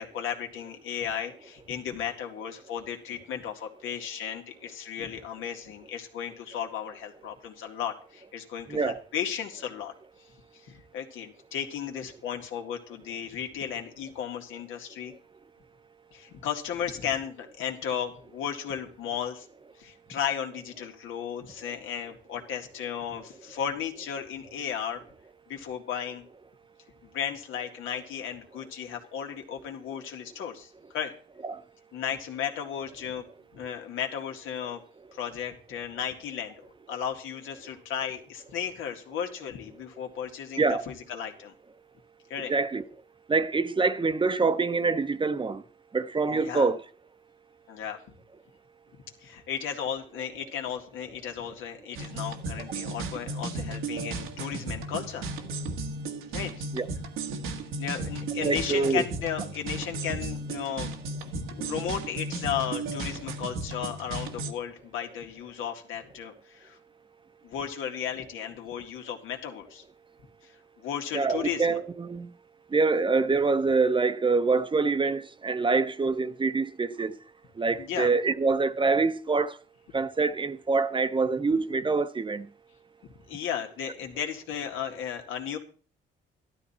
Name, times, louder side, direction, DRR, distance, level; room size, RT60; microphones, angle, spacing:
voice 1, 0.0-9.9 10.5-15.1 16.1-19.5 19.8-25.0 25.5-26.2 27.0-31.1 31.9-33.2 33.5-34.8 35.1-36.6 36.9-41.5 42.3-42.5 46.3-46.7 47.7-48.0 49.2-55.3 56.3-56.6 57.3-60.9 61.3-66.8 67.4-69.8 70.4-71.8 77.7-78.1 83.0-85.6, left 8 dB, 85° left, 2.2 m, -35 dB
voice 2, 42.5-42.8 43.3-45.6 45.9-46.8 56.7-56.8 58.4-59.0 71.1-72.3 72.7-77.1 77.6-79.5 79.9-82.5, right 4 dB, 25° right, 0.8 m, -25 dB
sound 1, 52.0-64.5, right 3 dB, 85° right, 1.6 m, -35 dB
13.5 x 12.0 x 4.3 m
cardioid pair, 90°, 20 cm